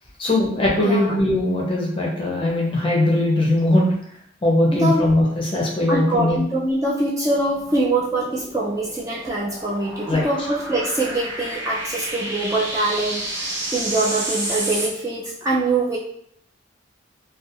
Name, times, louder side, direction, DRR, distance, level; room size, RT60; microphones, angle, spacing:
voice 1, 0.2-3.9 4.4-6.4 10.1-10.3, left 1 dB, 25° left, -3 dB, 0.6 m, -20 dB
voice 2, 0.8-1.2 4.7-5.1 5.9-16.0, right 2 dB, 15° right, -6 dB, 0.3 m, -23 dB
sound 1, 7.4-14.9, right 1 dB, 70° right, 0.9 m, -31 dB
2.4 x 2.2 x 2.7 m, 0.67 s
head